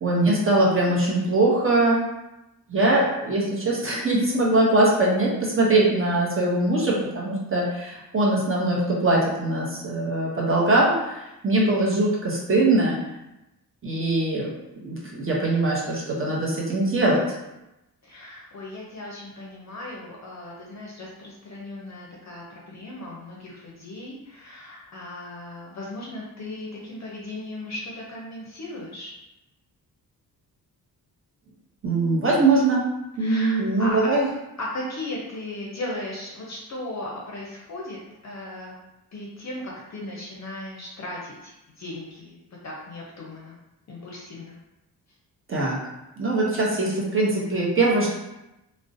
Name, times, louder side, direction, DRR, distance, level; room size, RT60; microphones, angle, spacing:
voice 1, 0.0-2.0 2.7-13.0 13.8-17.2 31.8-32.8 33.2-34.3 45.5-45.8 46.2-48.1, right 2 dB, 35° right, -4 dB, 0.6 m, -22 dB
voice 2, 18.0-29.1 33.2-34.0 34.6-38.7 39.1-42.4 42.6-43.6 43.9-44.6, left 1 dB, 50° left, -3 dB, 0.5 m, -37 dB
2.4 x 2.0 x 2.5 m, 0.94 s
cardioid pair, 80°, 37 cm